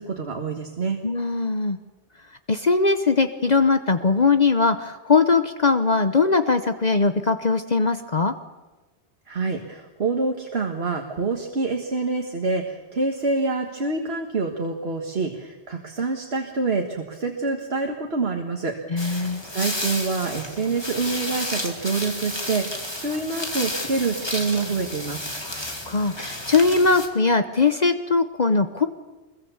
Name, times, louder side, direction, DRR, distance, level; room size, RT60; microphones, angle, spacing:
voice 1, 0.0-1.0 9.3-25.3, right 3 dB, 65° right, 2 dB, 1.9 m, -27 dB
voice 2, 1.0-1.8 2.5-8.3 18.9-19.4 25.4-28.9, left 4 dB, 40° left, 9 dB, 1.0 m, -21 dB
sound 1, 19.0-27.1, left 1 dB, 25° left, 2.6 m, -32 dB
25.0 x 22.0 x 7.1 m, 1.2 s
omnidirectional pair, 1.1 m